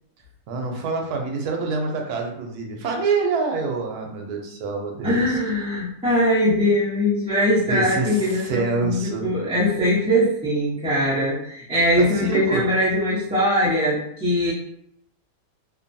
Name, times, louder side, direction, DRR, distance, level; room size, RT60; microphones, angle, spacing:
voice 1, 0.5-5.4 7.7-9.3 12.0-12.6, right 4 dB, 80° right, 1 dB, 1.1 m, -26 dB
voice 2, 5.0-14.5, equal, 5° right, -9 dB, 0.6 m, -21 dB
2.9 x 2.2 x 2.6 m, 0.73 s
omnidirectional pair, 1.6 m